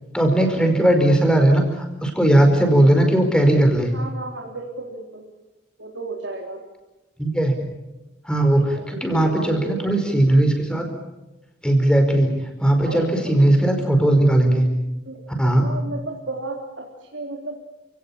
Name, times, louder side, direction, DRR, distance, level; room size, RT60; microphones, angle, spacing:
voice 1, 0.1-3.9 7.2-7.6 8.3-10.8 11.6-12.3 12.6-14.7 15.4-15.7, right 1 dB, 5° left, 4 dB, 5.0 m, -18 dB
voice 2, 3.9-5.2 5.8-6.6 8.5-10.0 12.8-13.5 15.1-17.6, right 2 dB, 90° right, 0 dB, 3.6 m, -34 dB
30.0 x 18.0 x 8.8 m, 1.0 s
head